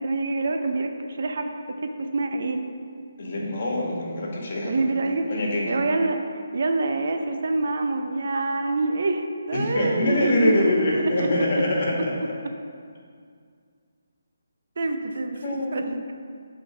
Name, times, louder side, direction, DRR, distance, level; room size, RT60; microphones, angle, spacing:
voice 1, 0.0-2.6 4.6-5.3 5.7-10.7 11.0-11.6 14.8-16.1, right 2 dB, 55° right, 5 dB, 0.6 m, -26 dB
voice 2, 3.2-4.7 5.3-5.7 9.5-12.1 15.4-16.0, left 1 dB, 45° left, -2 dB, 1.5 m, -24 dB
8.1 x 3.9 x 4.9 m, 2.2 s
hypercardioid pair, 170°, 0 cm